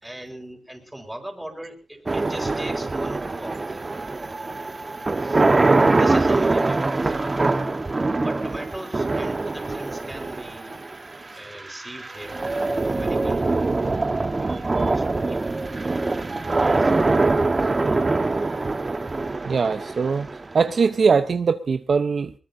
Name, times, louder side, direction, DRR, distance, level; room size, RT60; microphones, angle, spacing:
voice 1, 0.0-4.1 5.2-7.1 8.2-10.8 11.4-15.6 16.6-17.2 17.6-17.7, right 1 dB, 10° right, 3 dB, 4.7 m, -40 dB
sound 1, 2.1-21.1, right 3 dB, 30° right, 1.3 m, -23 dB
voice 2, 19.4-20.3 20.5-22.3, right 5 dB, 55° right, 9 dB, 0.8 m, -21 dB
22.0 x 20.0 x 2.7 m, 0.34 s
cardioid pair, 75°, 0 cm